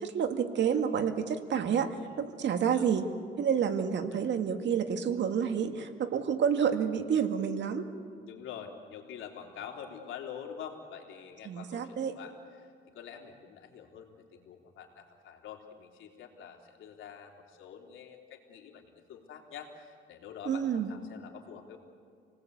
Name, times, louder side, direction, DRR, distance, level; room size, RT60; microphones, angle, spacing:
voice 1, 0.0-3.1 3.4-7.9 11.5-12.1 20.5-20.9, right 7 dB, 65° right, 7 dB, 2.0 m, -29 dB
voice 2, 8.1-21.8, left 8 dB, 85° left, 2 dB, 3.4 m, -46 dB
28.5 x 19.0 x 8.3 m, 2.3 s
cardioid pair, 90°, 20 cm